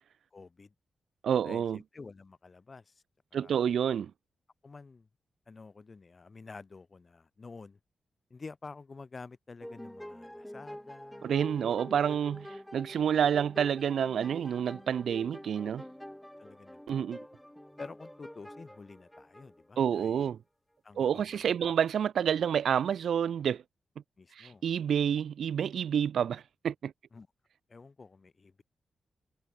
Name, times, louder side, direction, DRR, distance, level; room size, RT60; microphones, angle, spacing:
voice 1, 0.3-0.7 1.4-3.0 3.3-3.7 4.6-5.1 5.5-7.8 8.3-11.6 12.1-12.2 15.6-15.7 16.4-17.1 17.8-20.3 20.8-21.7 24.2-24.6 27.1-27.3 27.7-28.6, left 4 dB, 40° left, 2.1 m, -49 dB
voice 2, 1.2-1.8 3.3-4.1 11.2-12.4 12.7-15.8 16.9-17.2 19.8-20.4 21.0-23.6 24.4-26.9, right 8 dB, 80° right, 0.5 m, -28 dB
sound 1, 9.6-20.1, equal, 5° left, 1.1 m, -47 dB
cardioid pair, 80°, 0 cm